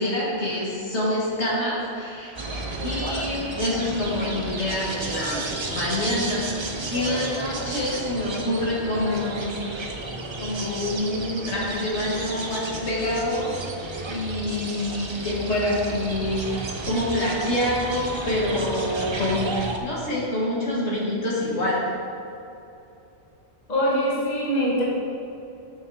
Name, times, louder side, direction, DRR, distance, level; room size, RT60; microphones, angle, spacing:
voice 1, 0.0-2.3 2.8-9.5 10.4-13.7 14.1-19.5 19.8-21.8, left 1 dB, 70° left, -5 dB, 1.9 m, -26 dB
sound 1, 2.4-19.8, right 2 dB, 35° right, 0.4 m, -32 dB
voice 2, 23.7-24.8, equal, 40° left, -5 dB, 1.6 m, -23 dB
6.7 x 6.4 x 4.6 m, 2.8 s
omnidirectional pair, 1.2 m